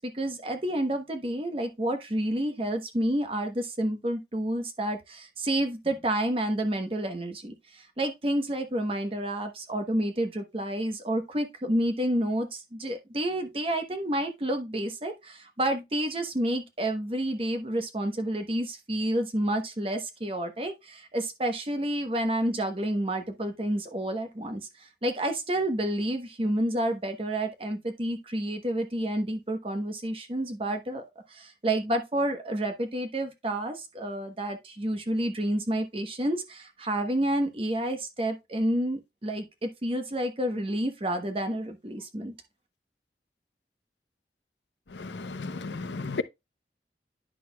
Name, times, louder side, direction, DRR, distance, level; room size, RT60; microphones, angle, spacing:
voice 1, 0.0-31.0 31.3-42.3, right 1 dB, 30° right, 1.0 m, -29 dB
voice 2, 44.9-46.2, left 3 dB, 85° left, 0.7 m, -34 dB
10.0 x 6.2 x 2.2 m
head